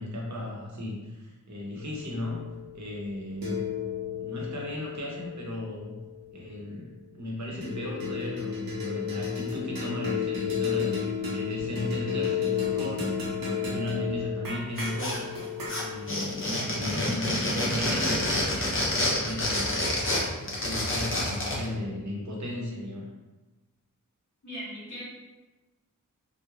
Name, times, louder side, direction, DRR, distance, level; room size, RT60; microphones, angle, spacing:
voice 1, 0.0-2.4 2.7-3.6 4.2-6.0 6.3-13.0 13.4-15.3 15.8-19.8 20.4-23.1, left 1 dB, 55° right, -2 dB, 0.8 m, -36 dB
sound 1, 1.8-6.4 7.6-18.1, left 6 dB, 90° right, 0.7 m, -33 dB
sound 2, 14.8-15.4 15.7-21.6, left 1 dB, 40° left, 0.7 m, -28 dB
voice 2, 24.4-25.0, equal, 55° left, -7 dB, 1.3 m, -38 dB
3.0 x 2.1 x 2.4 m, 1.2 s
wide cardioid pair, 65°, 33 cm